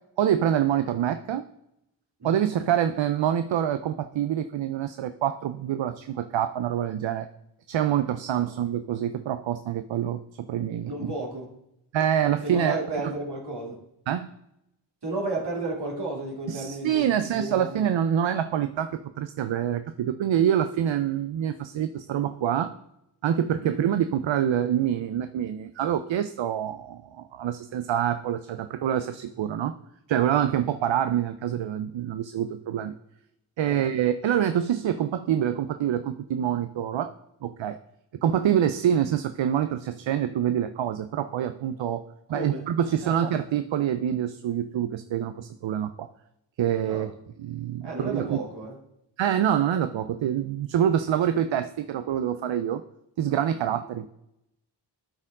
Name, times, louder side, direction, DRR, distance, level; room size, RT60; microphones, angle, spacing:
voice 1, 0.2-1.4 2.2-7.3 7.7-11.1 11.9-12.8 13.0-13.1 14.1-14.3 16.5-22.7 23.2-29.7 30.1-32.9 33.6-37.1 37.4-37.8 38.2-42.0 42.3-46.1 46.6-47.1 47.4-48.4 49.2-52.8 53.2-54.1, right 10 dB, 75° right, 10 dB, 0.5 m, -26 dB
voice 2, 10.8-11.5 12.4-13.8 15.0-17.9 23.6-23.9 33.6-33.8 42.3-42.6 43.0-43.3 46.8-47.1 47.8-48.8, right 2 dB, 60° right, -2 dB, 2.3 m, -33 dB
12.5 x 4.5 x 3.6 m, 0.83 s
wide cardioid pair, 80°, 46 cm